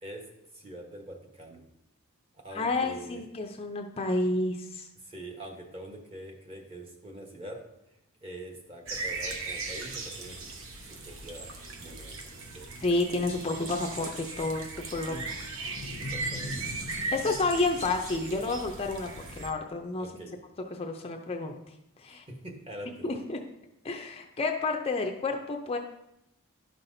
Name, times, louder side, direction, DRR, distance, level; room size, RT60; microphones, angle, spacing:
voice 1, 0.5-1.6 2.4-3.2 5.0-7.6 8.2-10.4 10.8-12.2 12.5-12.7 15.1-15.4 16.0-16.6 17.0-17.2 20.0-20.3 22.1-23.1, right 1 dB, 25° right, 1 dB, 1.1 m, -44 dB
voice 2, 2.5-4.9 12.8-15.2 17.1-19.1 19.4-20.1 20.7-21.6 22.0-22.2 23.0-23.4 23.8-25.8, left 2 dB, 25° left, 3 dB, 0.5 m, -30 dB
sound 1, 8.9-19.5, right 3 dB, 60° right, 0.9 m, -38 dB
sound 2, 15.6-18.9, left 2 dB, 85° left, 0.6 m, -43 dB
11.0 x 5.7 x 2.6 m, 0.84 s
head